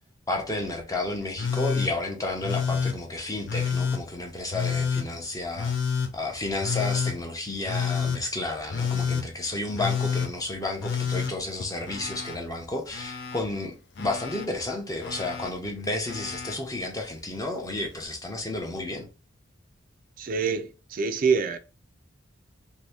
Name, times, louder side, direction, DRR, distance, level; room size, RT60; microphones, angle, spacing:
voice 1, 0.3-5.7 6.1-19.1, left 2 dB, 20° left, 0.6 m, -32 dB
Telephone, 1.4-1.9 2.4-3.0 3.5-4.0 4.5-5.1 5.6-6.1 6.6-7.2 7.7-8.2 8.7-9.3 9.7-10.3 10.8-12.4 12.6-13.4 14.0-14.5 15.0-15.5 16.1-16.6 17.8-17.9, left 6 dB, 60° left, 0.5 m, -28 dB
voice 2, 20.2-21.6, right 5 dB, 45° right, 0.4 m, -26 dB
2.7 x 2.6 x 3.4 m
head